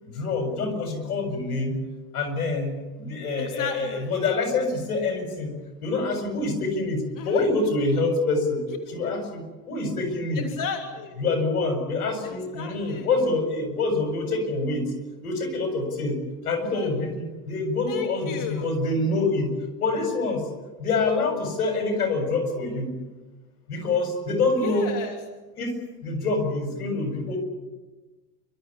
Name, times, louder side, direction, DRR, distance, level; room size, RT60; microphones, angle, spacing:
voice 1, 0.0-1.8 2.1-8.6 8.9-10.5 11.2-14.9 15.2-16.2 16.4-20.5 20.8-22.9 23.7-24.9 25.6-25.7 26.0-27.4, left 3 dB, 85° left, 5 dB, 7.4 m, -26 dB
voice 2, 3.4-4.1 7.2-7.4 10.4-11.1 12.2-13.1 16.7-16.9 17.9-18.7 24.6-25.2, left 6 dB, 45° left, 4 dB, 3.2 m, -33 dB
29.5 x 14.0 x 9.9 m, 1.2 s
hypercardioid pair, 95°, 44 cm